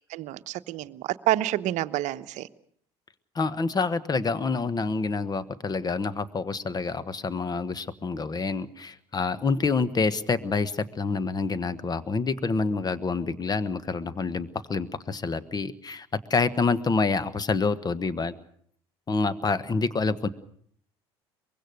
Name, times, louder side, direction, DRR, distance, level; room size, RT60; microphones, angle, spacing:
voice 1, 0.1-2.5, right 14 dB, 55° right, 12 dB, 0.9 m, -28 dB
voice 2, 3.3-18.3 19.1-20.3, left 4 dB, 30° left, 15 dB, 1.3 m, -27 dB
23.5 x 21.0 x 6.5 m, 0.63 s
hypercardioid pair, 65°, 14 cm